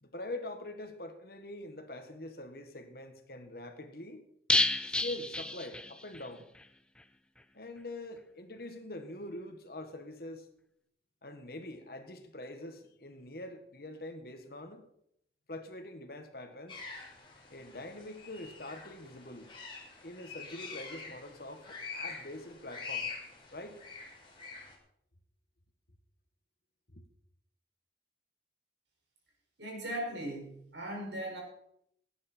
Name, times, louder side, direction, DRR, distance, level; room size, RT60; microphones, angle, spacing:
voice 1, 0.0-4.3 5.0-6.5 7.5-10.5 11.2-14.8 15.5-16.8 17.5-19.5 20.0-23.1 23.5-23.8 26.9-27.1, left 1 dB, 55° left, 7 dB, 1.6 m, -44 dB
sound 1, 4.5-6.3 6.6-6.7 7.0-7.1, left 2 dB, 5° left, 0.5 m, -30 dB
sound 2, 16.7-24.8, left 5 dB, 30° left, 2.6 m, -45 dB
voice 2, 29.6-31.4, right 1 dB, 85° right, -1 dB, 5.5 m, -38 dB
18.0 x 9.5 x 4.5 m, 0.73 s
head